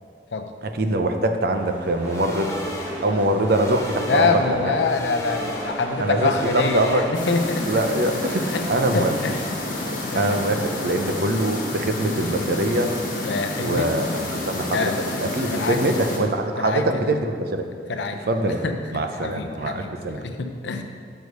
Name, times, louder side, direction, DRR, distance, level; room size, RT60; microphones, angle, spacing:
voice 1, 0.7-2.6 3.0-4.7 6.0-7.0 7.7-9.1 9.9-12.9 13.6-14.1 14.4-14.9 15.3-17.7 18.3-18.6 18.9-20.2, right 1 dB, 60° right, 5 dB, 0.6 m, -23 dB
sound 1, 1.6-11.2, equal, 10° right, 1.1 m, -37 dB
sound 2, 2.0-7.4, equal, 15° left, 0.8 m, -34 dB
voice 2, 4.0-7.8 8.5-8.6 8.9-9.4 10.1-10.4 13.2-13.9 14.7-15.0 15.5-16.1 16.6-17.0 17.9-18.2 18.6-18.8 19.2-20.8, left 4 dB, 80° left, 6 dB, 0.6 m, -25 dB
sound 3, 7.1-16.2, left 2 dB, 50° left, 1.4 m, -29 dB
6.4 x 4.8 x 5.3 m, 2.1 s
head